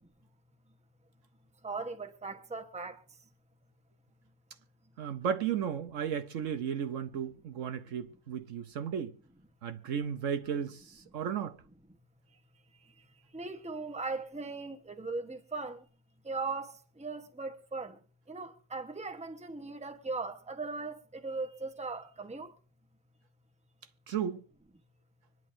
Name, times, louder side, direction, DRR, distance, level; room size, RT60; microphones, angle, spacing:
voice 1, 1.6-3.0 13.3-15.8 16.2-18.0 18.3-22.5, right 3 dB, 5° right, 1.0 m, -38 dB
voice 2, 5.0-9.2 9.6-11.6 24.1-24.4, right 8 dB, 65° right, 1.0 m, -34 dB
25.0 x 10.5 x 2.7 m
omnidirectional pair, 1.5 m